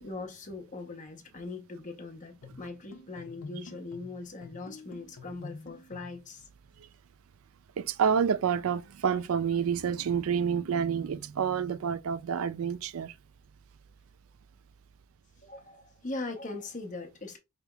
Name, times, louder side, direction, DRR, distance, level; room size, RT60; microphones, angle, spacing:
voice 1, 0.0-6.5 15.4-17.4, left 3 dB, 35° left, 0.8 m, -40 dB
sound 1, 2.4-6.3, left 3 dB, 70° left, 0.6 m, -48 dB
voice 2, 7.8-13.1, right 7 dB, 80° right, 0.4 m, -28 dB
5.0 x 2.9 x 2.3 m
head